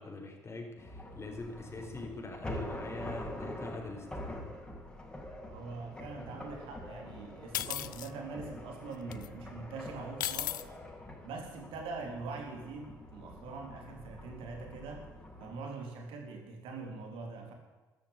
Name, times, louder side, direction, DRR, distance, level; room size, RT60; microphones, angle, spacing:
voice 1, 0.0-4.1, left 3 dB, 25° left, 2 dB, 4.4 m, -43 dB
sound 1, 0.8-15.6, left 1 dB, 10° left, 6.0 m, -45 dB
voice 2, 5.5-10.7 11.2-15.0 15.4-17.5, right 4 dB, 60° right, 3 dB, 3.6 m, -43 dB
sound 2, 7.5-8.1 9.1-9.3 10.2-10.6, left 13 dB, 80° left, 0.4 m, -35 dB
13.5 x 12.5 x 8.4 m, 1.2 s
figure-of-eight pair, 50°, 10 cm